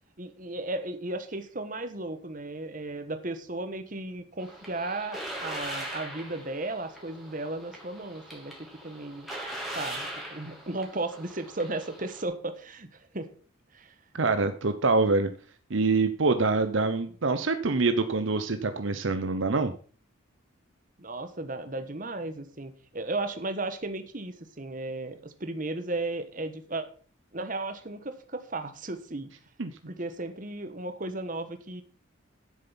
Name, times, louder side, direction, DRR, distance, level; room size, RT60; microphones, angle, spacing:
voice 1, 0.2-9.3 9.7-13.3 13.7-13.9 21.0-26.9 27.3-29.3 29.9-31.8, right 2 dB, 40° right, 9 dB, 1.3 m, -35 dB
sound 1, 4.4-12.2, right 1 dB, ahead, 2.9 m, -40 dB
voice 2, 14.1-15.3 15.7-19.7 29.6-29.7, right 3 dB, 70° right, 9 dB, 0.8 m, -25 dB
10.5 x 7.8 x 5.8 m, 0.41 s
head